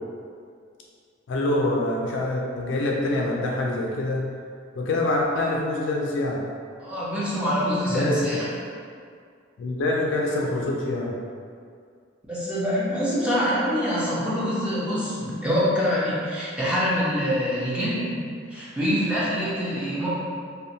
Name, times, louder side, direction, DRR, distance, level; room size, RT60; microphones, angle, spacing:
voice 1, 1.3-4.2 4.8-6.4 7.9-8.3 9.6-11.1, left 2 dB, 65° left, -1 dB, 0.4 m, -25 dB
voice 2, 6.8-8.5 12.3-20.1, equal, 5° right, -10 dB, 0.6 m, -25 dB
2.7 x 2.1 x 2.7 m, 2.2 s
head